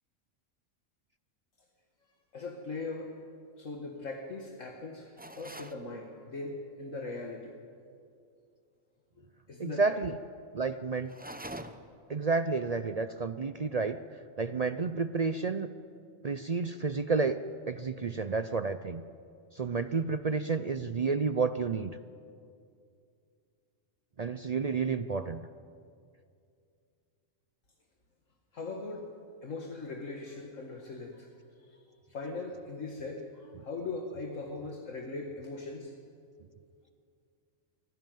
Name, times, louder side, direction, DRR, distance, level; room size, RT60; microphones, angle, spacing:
voice 1, 2.3-3.2 3.6-7.5 9.2-10.0 28.5-29.1 29.4-31.3 31.6-35.9, left 3 dB, 70° left, 1 dB, 2.0 m, -40 dB
sound 1, 5.2-5.8 11.1-12.0, right 1 dB, 10° right, 0.7 m, -44 dB
voice 2, 9.6-10.1 10.5-11.1 12.1-14.0 14.4-15.7 16.2-17.4 17.7-19.0 19.5-22.0 24.2-25.4, right 4 dB, 45° right, 11 dB, 0.5 m, -30 dB
25.0 x 16.0 x 9.2 m, 2.4 s
omnidirectional pair, 1.4 m